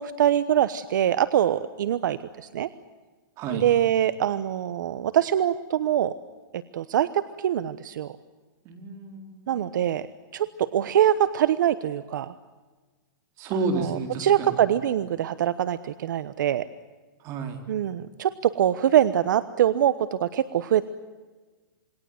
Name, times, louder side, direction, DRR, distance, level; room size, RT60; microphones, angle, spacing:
voice 1, 0.0-2.7 3.5-6.1 6.5-8.2 9.5-10.1 10.3-12.3 13.5-16.7 17.7-20.9, right 10 dB, 65° right, 14 dB, 1.0 m, -24 dB
voice 2, 8.7-9.5 13.4-14.6 17.2-17.6, right 3 dB, 25° right, 5 dB, 4.0 m, -31 dB
27.5 x 22.0 x 7.9 m, 1.3 s
hypercardioid pair, 160°, 11 cm